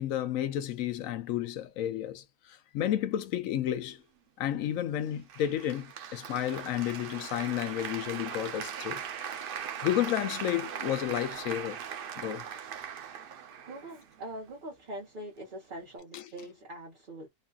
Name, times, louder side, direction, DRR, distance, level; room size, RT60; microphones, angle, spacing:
voice 1, 0.0-4.0 4.4-9.0 9.4-9.5 9.8-11.8 12.2-12.4 16.1-16.2, left 11 dB, 70° left, 0.9 m, -31 dB
Applause, 5.3-14.3, right 8 dB, 85° right, 0.5 m, -40 dB
voice 2, 13.2-17.3, right 1 dB, 40° right, 0.9 m, -43 dB
3.1 x 2.3 x 2.3 m
omnidirectional pair, 1.6 m